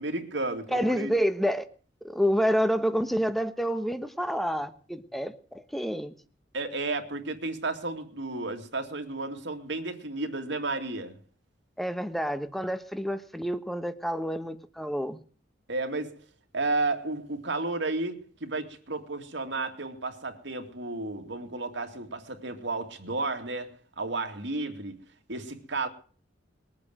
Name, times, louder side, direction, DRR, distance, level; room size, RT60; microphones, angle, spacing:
voice 1, 0.0-1.1 6.5-11.2 15.7-16.2 16.5-25.0 25.3-25.9, right 2 dB, 70° right, 2.5 m, -32 dB
voice 2, 0.7-1.7 2.0-6.1 11.8-15.2, equal, ahead, 1.3 m, -28 dB
21.5 x 8.6 x 7.8 m
head